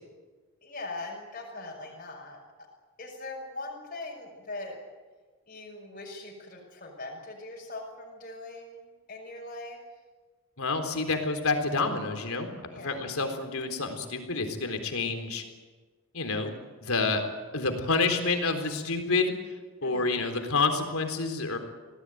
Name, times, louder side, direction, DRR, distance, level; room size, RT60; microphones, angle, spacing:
voice 1, 0.6-2.4 3.0-4.8 5.5-9.8 12.7-13.0 19.8-20.2, left 2 dB, 40° left, -2 dB, 6.0 m, -41 dB
voice 2, 10.6-15.4 16.1-16.5 16.8-17.2 17.5-19.3 19.8-21.6, left 3 dB, 75° left, 5 dB, 3.9 m, -28 dB
26.0 x 18.0 x 9.3 m, 1.3 s
head